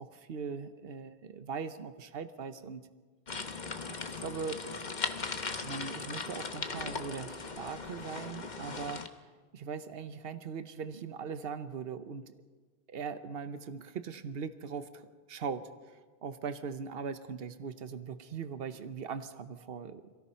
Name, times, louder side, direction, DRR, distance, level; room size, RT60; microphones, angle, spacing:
voice 1, 0.0-2.9 3.9-4.6 5.6-9.1 9.5-12.3 12.9-15.6 16.2-20.0, right 6 dB, 65° right, 11 dB, 1.2 m, -40 dB
sound 1, 3.3-9.1, left 4 dB, 45° left, 1.3 m, -38 dB
26.5 x 17.5 x 5.7 m, 1.4 s
omnidirectional pair, 1.1 m